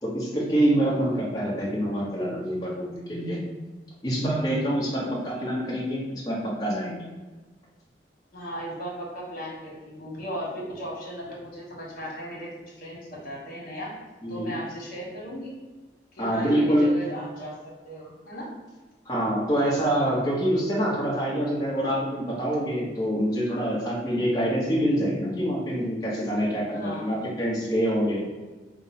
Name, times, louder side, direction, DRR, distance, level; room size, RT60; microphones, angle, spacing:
voice 1, 0.0-3.4 4.0-7.0 14.2-14.5 16.2-17.0 19.0-28.3, equal, 25° left, -7 dB, 0.9 m, -26 dB
voice 2, 0.7-1.1 8.3-14.0 14.3-15.6 16.1-18.5 26.7-27.1, equal, 55° left, -4 dB, 1.3 m, -37 dB
5.0 x 2.0 x 4.1 m, 1.2 s
head